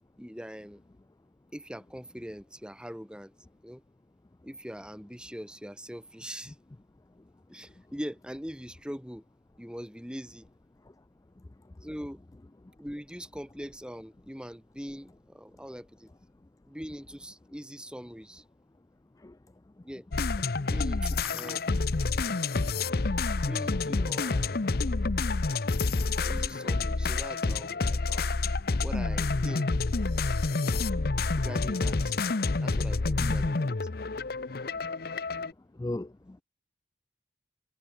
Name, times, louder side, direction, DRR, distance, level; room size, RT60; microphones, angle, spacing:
voice 1, 0.2-0.8 1.5-3.3 3.6-3.8 4.4-6.6 7.5-9.2 9.6-10.5 11.8-12.2 12.8-16.1 16.7-18.4 19.8-20.1 20.6-21.7 23.4-24.6 25.9-28.3 28.8-29.7 31.4-32.1 32.6-33.9, equal, 5° right, 3.4 m, -42 dB
sound 1, 20.1-35.5, left 3 dB, 55° left, 0.7 m, -28 dB
voice 2, 35.8-36.4, left 2 dB, 20° left, 0.4 m, -36 dB
head